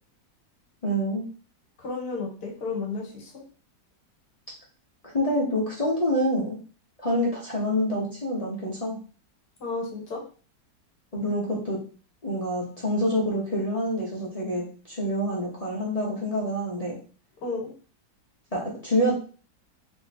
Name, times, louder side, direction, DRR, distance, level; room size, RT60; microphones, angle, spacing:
voice 1, 0.8-1.3 5.1-6.6 7.0-9.0 11.1-11.8 12.2-17.0 18.5-19.1, equal, 30° left, -5 dB, 0.7 m, -27 dB
voice 2, 1.8-3.4 9.6-10.2 17.4-17.7, left 3 dB, 70° left, 0 dB, 1.7 m, -32 dB
3.5 x 2.9 x 4.1 m, 0.39 s
omnidirectional pair, 1.9 m